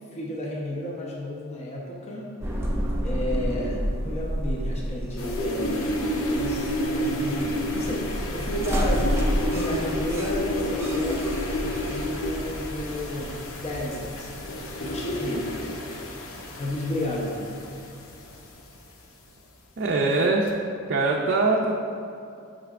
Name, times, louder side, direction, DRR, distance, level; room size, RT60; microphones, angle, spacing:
voice 1, 0.1-2.3 3.0-11.2 11.6-14.3 14.8-15.5 16.5-17.4, left 1 dB, 30° left, -2 dB, 0.9 m, -32 dB
sound 1, 2.4-14.8, equal, 10° right, 0.7 m, -30 dB
sound 2, 5.2-19.0 20.2-20.5, left 1 dB, 70° left, 0.8 m, -30 dB
voice 2, 19.8-20.5 20.9-21.7, right 3 dB, 50° right, -1 dB, 0.5 m, -22 dB
8.9 x 6.6 x 2.5 m, 2.6 s
head